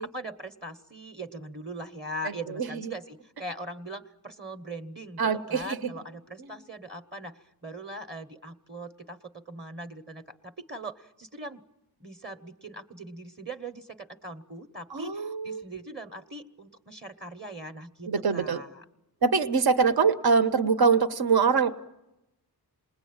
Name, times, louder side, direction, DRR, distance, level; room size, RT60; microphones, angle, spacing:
voice 1, 0.0-11.6 12.0-18.8, right 1 dB, 30° right, 7 dB, 1.2 m, -41 dB
voice 2, 2.2-2.9 5.2-5.9 6.4-6.5 14.9-15.6 18.1-18.6 19.2-21.7, right 5 dB, 70° right, 8 dB, 1.3 m, -24 dB
28.5 x 20.5 x 8.8 m, 0.93 s
wide cardioid pair, 105°, 39 cm